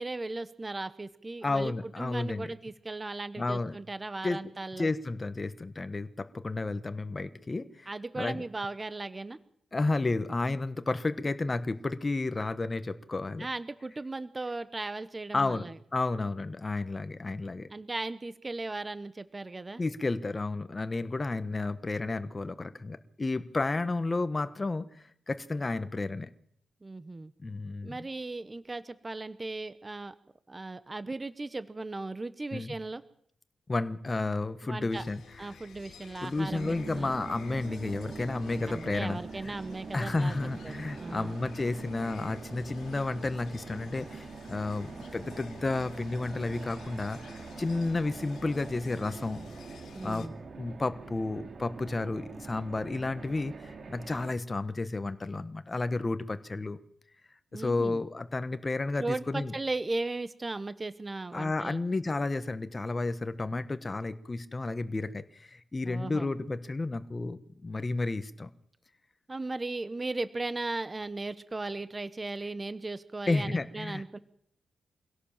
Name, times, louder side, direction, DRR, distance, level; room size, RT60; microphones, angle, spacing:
voice 1, 0.0-4.9 7.9-9.4 13.4-15.7 17.7-19.8 26.8-27.3 27.8-30.1 30.5-33.0 34.6-35.0 35.4-37.1 38.7-40.3 40.6-41.4 49.9-50.3 57.5-58.0 59.0-61.8 65.8-66.3 69.3-74.2, right 2 dB, 20° right, 14 dB, 1.1 m, -37 dB
voice 2, 1.4-2.5 3.4-3.7 4.2-4.4 4.8-7.9 8.2-8.4 9.7-13.5 15.3-15.6 15.9-17.7 19.8-26.3 27.4-27.9 32.5-32.7 33.7-35.2 36.2-39.6 39.9-47.3 47.6-49.5 50.0-50.3 50.6-56.8 57.5-59.5 61.3-68.5 73.3-74.0, left 3 dB, 25° left, 11 dB, 1.2 m, -32 dB
sound 1, 34.9-50.3, left 6 dB, 75° left, 2.2 m, -53 dB
sound 2, 36.5-54.3, right 4 dB, 45° right, 2.8 m, -44 dB
24.5 x 17.0 x 7.4 m, 0.65 s
wide cardioid pair, 120°, 0 cm